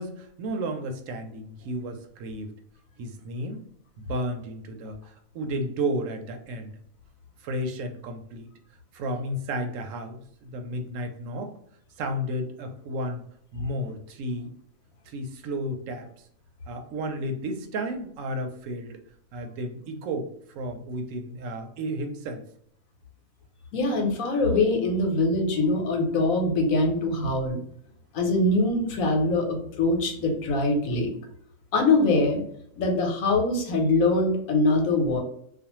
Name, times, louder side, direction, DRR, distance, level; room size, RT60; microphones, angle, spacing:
voice 1, 0.0-2.5 3.0-3.6 4.0-6.7 7.4-8.5 8.9-11.5 12.0-13.2 13.5-14.5 15.1-16.1 16.7-19.0 19.3-22.4, right 1 dB, 75° right, 5 dB, 0.9 m, -32 dB
voice 2, 23.7-27.6 28.1-31.1 31.7-32.4 32.8-35.2, left 2 dB, 85° left, 3 dB, 1.1 m, -23 dB
2.5 x 2.3 x 2.9 m, 0.68 s
omnidirectional pair, 1.4 m